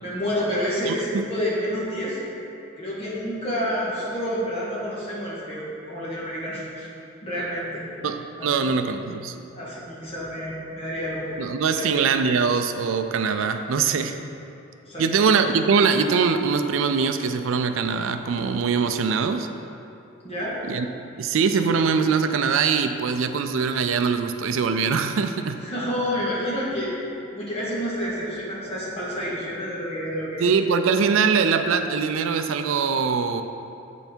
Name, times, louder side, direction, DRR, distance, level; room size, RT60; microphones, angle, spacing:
voice 1, 0.0-2.2 2.8-6.9 7.2-7.8 8.4-8.7 9.5-11.3 11.7-11.9 14.8-15.1 20.2-20.6 25.6-26.9 27.3-30.5, equal, 30° left, -7 dB, 1.7 m, -29 dB
voice 2, 0.9-1.2 8.0-9.4 11.4-14.2 15.0-19.5 20.7-20.9 21.2-25.6 30.4-33.4, right 5 dB, 75° right, 8 dB, 0.4 m, -22 dB
7.9 x 5.7 x 4.4 m, 2.8 s
head